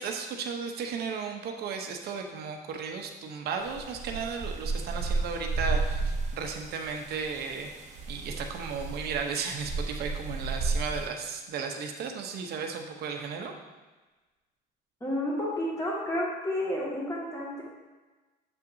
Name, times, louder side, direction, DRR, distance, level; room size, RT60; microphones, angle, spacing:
voice 1, 0.0-7.7 8.1-13.5, right 5 dB, 70° right, 3 dB, 0.8 m, -35 dB
sound 1, 3.6-11.1, right 3 dB, 45° right, 0.9 m, -33 dB
voice 2, 15.0-17.6, left 1 dB, 20° left, -5 dB, 1.9 m, -31 dB
7.2 x 5.6 x 2.7 m, 1.2 s
cardioid pair, 110°, 17 cm